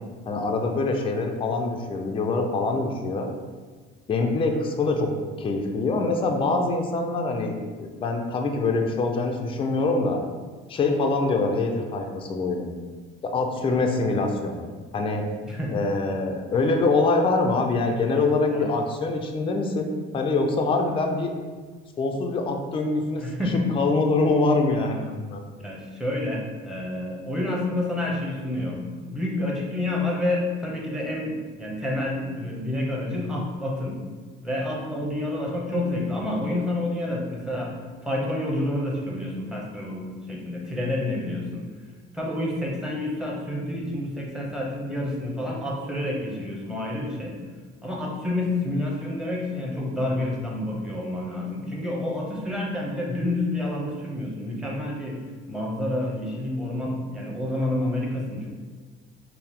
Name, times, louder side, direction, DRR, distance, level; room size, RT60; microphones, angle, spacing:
voice 1, 0.3-3.3 4.1-5.1 5.4-10.2 10.7-12.7 13.2-14.7 14.9-15.2 15.7-21.3 22.0-23.3 23.5-25.4, left 3 dB, 25° left, 3 dB, 0.4 m, -24 dB
voice 2, 15.4-15.8 18.5-18.7 23.2-23.6 25.6-34.0 34.4-37.7 38.0-41.6 42.1-47.3 47.8-55.2 55.5-58.5, left 1 dB, 5° right, -3 dB, 0.8 m, -29 dB
4.4 x 2.0 x 3.6 m, 1.4 s
cardioid pair, 115°, 21 cm